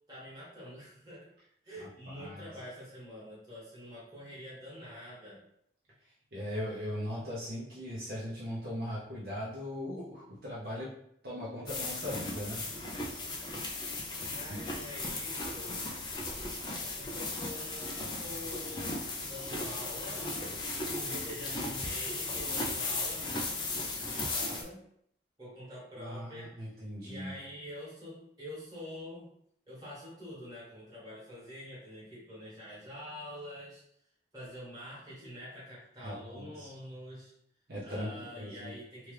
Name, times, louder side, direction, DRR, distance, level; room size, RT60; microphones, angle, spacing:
voice 1, 0.1-1.3 1.6-5.4 14.3-15.7 16.8-23.6 24.1-24.8 25.4-26.6 27.0-29.3 29.7-33.8 34.3-37.3 37.8-39.1, equal, 20° right, -8 dB, 1.4 m, -46 dB
voice 2, 1.8-2.5 6.3-10.9 11.2-12.6 14.5-14.6 25.9-27.3 36.0-36.7 37.7-38.7, equal, 55° right, -6 dB, 0.6 m, -39 dB
sound 1, 11.7-24.6, left 2 dB, 25° left, 0.4 m, -36 dB
2.9 x 2.3 x 3.2 m, 0.71 s
head